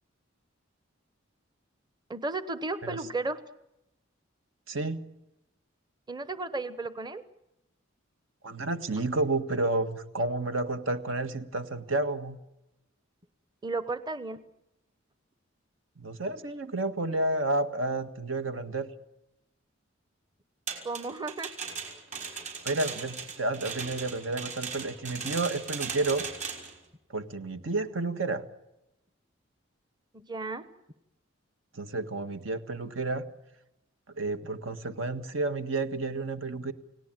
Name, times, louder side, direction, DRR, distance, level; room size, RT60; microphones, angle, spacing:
voice 1, 2.1-3.4 6.1-7.2 13.6-14.4 20.8-21.5 30.1-30.6, right 3 dB, 20° right, 12 dB, 1.0 m, -34 dB
voice 2, 4.7-5.0 8.4-12.4 16.0-18.9 22.6-26.3 27.1-28.4 31.7-33.2 34.2-36.7, right 2 dB, 80° right, 9 dB, 1.7 m, -31 dB
sound 1, 20.7-26.7, right 5 dB, 40° right, 5.7 m, -38 dB
30.0 x 18.0 x 9.1 m, 0.92 s
head